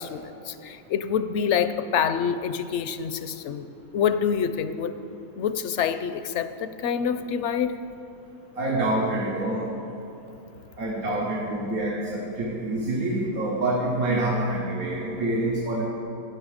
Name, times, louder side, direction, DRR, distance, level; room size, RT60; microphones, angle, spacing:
voice 1, 0.0-3.7 3.9-4.9 5.4-7.8 14.1-14.5, left 7 dB, 65° left, 11 dB, 0.8 m, -27 dB
voice 2, 8.6-9.7 10.8-15.8, right 1 dB, 90° right, -4 dB, 2.0 m, -26 dB
16.0 x 9.8 x 5.0 m, 3.0 s
omnidirectional pair, 1.5 m